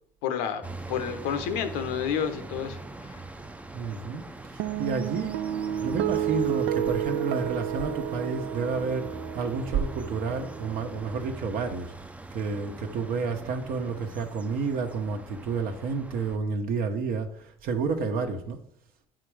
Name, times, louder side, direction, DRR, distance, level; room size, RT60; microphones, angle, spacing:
voice 1, 0.2-0.6 0.9-3.2, left 8 dB, 85° left, 1.0 m, -30 dB
sound 1, 0.6-16.4, right 2 dB, 10° right, 0.5 m, -42 dB
voice 2, 3.7-4.2 4.5-5.4 5.8-11.9 12.3-18.6, right 4 dB, 60° right, 1.0 m, -30 dB
sound 2, 4.6-11.2, right 10 dB, 80° right, 0.5 m, -31 dB
9.0 x 4.1 x 4.8 m
supercardioid pair, 90°, 17 cm